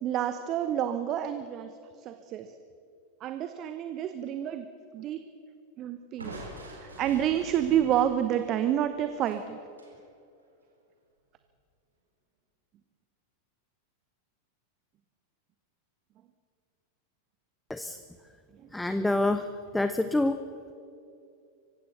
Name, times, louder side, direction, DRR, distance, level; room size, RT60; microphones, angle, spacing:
voice 1, 0.0-1.7 2.0-2.5 3.2-4.6 4.9-5.2 5.8-6.4 6.8-9.6, right 10 dB, 35° right, 9 dB, 1.0 m, -29 dB
Crushing, 6.2-10.0, right 1 dB, 75° right, 4.1 m, -45 dB
voice 2, 18.7-20.4, left 2 dB, 5° left, 10 dB, 0.7 m, -27 dB
24.5 x 16.0 x 6.8 m, 2.5 s
figure-of-eight pair, 90°, 0 cm